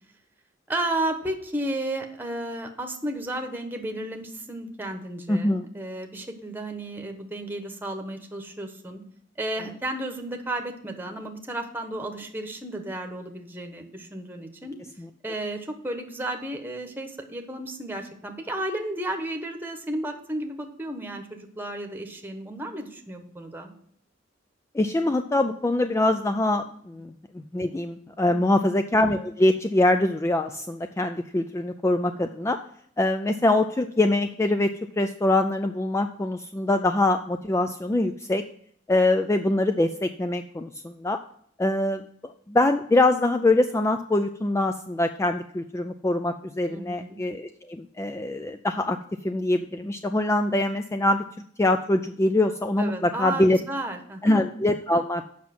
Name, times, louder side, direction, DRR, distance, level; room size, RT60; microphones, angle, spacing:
voice 1, 0.7-9.0 9.4-14.8 15.2-23.7 46.7-47.2 52.8-54.5, right 1 dB, 10° right, 4 dB, 1.1 m, -33 dB
voice 2, 5.3-5.7 15.0-15.1 24.7-32.6 33.0-38.4 38.9-41.2 41.6-49.0 49.2-51.2 51.6-53.6 54.2-55.2, left 2 dB, 15° left, 7 dB, 0.3 m, -24 dB
7.4 x 5.8 x 5.9 m, 0.65 s
head